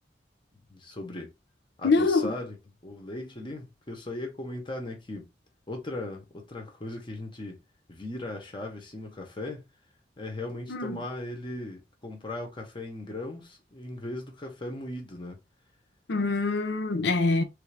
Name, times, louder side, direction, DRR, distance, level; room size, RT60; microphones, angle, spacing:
voice 1, 0.7-1.3 1.8-2.6 2.8-5.3 5.7-7.6 7.9-9.7 10.2-15.4, left 2 dB, 25° left, 0.7 m, -38 dB
voice 2, 1.8-2.4 10.7-11.0 16.1-17.4, left 3 dB, 65° left, 0.6 m, -25 dB
3.3 x 2.4 x 3.2 m
head